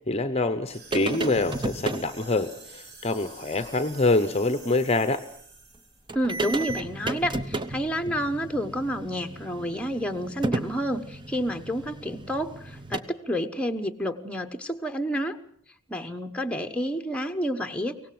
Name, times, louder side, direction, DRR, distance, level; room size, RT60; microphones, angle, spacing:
voice 1, 0.1-5.2, left 2 dB, 25° left, 11 dB, 0.8 m, -25 dB
sound 1, 0.7-6.1, right 3 dB, 45° right, 7.7 m, -48 dB
sound 2, 0.9-2.1 3.6-3.7 4.1-4.2 5.7-5.8 6.1-13.0, right 2 dB, 20° right, 1.0 m, -33 dB
voice 2, 6.1-15.4 15.9-18.0, equal, 5° left, 6 dB, 1.1 m, -29 dB
23.5 x 18.5 x 7.8 m, 0.62 s
head